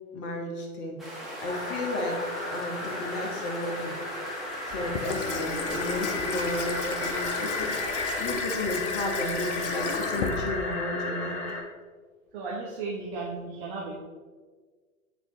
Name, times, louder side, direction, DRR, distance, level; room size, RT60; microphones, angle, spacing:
voice 1, 0.1-2.2 2.5-4.0 4.7-11.4, left 2 dB, 25° left, 2 dB, 1.1 m, -33 dB
sound 1, 1.0-8.2, right 1 dB, ahead, 1.3 m, -40 dB
sound 2, 1.4-11.6, left 2 dB, 60° left, 1.5 m, -34 dB
Water tap faucet / Sink (filling or washing), 4.7-11.0, left 5 dB, 40° left, 0.6 m, -35 dB
voice 2, 12.3-14.0, right 3 dB, 40° right, -4 dB, 1.1 m, -35 dB
9.6 x 3.6 x 3.1 m, 1.5 s
figure-of-eight pair, 105°, 44 cm